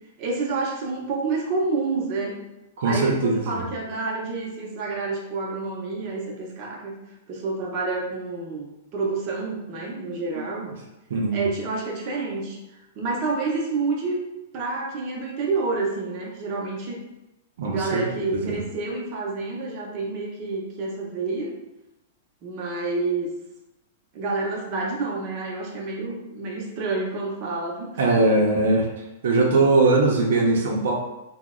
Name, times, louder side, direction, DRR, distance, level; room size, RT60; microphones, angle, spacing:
voice 1, 0.2-2.4 2.8-7.0 7.3-10.7 11.3-14.2 14.5-17.0 17.7-21.5 22.4-23.3 24.1-28.2, right 3 dB, 35° right, -2 dB, 0.7 m, -29 dB
voice 2, 2.8-3.6 11.1-11.5 17.6-18.1 18.3-18.5 28.0-28.9 29.2-30.9, right 2 dB, 70° right, -1 dB, 0.6 m, -20 dB
2.8 x 2.1 x 3.6 m, 0.96 s
supercardioid pair, 160°, 0 cm